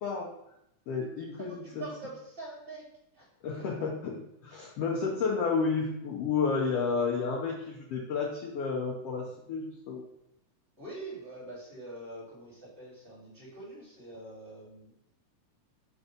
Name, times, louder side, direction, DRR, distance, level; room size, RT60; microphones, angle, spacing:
voice 1, 0.9-1.6 3.4-3.9 4.4-10.0, left 5 dB, 75° left, -1 dB, 1.4 m, -31 dB
voice 2, 1.4-2.8 3.1-3.3 10.8-14.9, right 2 dB, 15° right, -7 dB, 2.5 m, -44 dB
6.4 x 3.6 x 5.1 m, 0.78 s
omnidirectional pair, 3.8 m